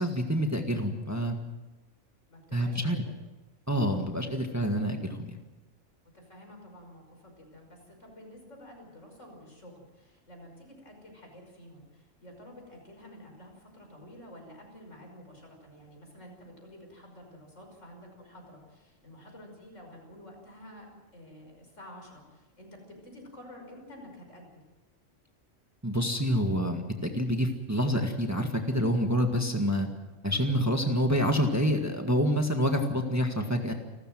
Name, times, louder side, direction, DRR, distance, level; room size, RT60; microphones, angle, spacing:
voice 1, 0.0-1.4 2.5-3.0 3.7-5.4 25.8-29.9 30.2-33.7, equal, 15° right, 4 dB, 1.7 m, -27 dB
voice 2, 2.3-3.1 6.1-24.6, left 1 dB, 70° left, 2 dB, 6.1 m, -50 dB
29.0 x 14.0 x 7.7 m, 1.1 s
omnidirectional pair, 1.3 m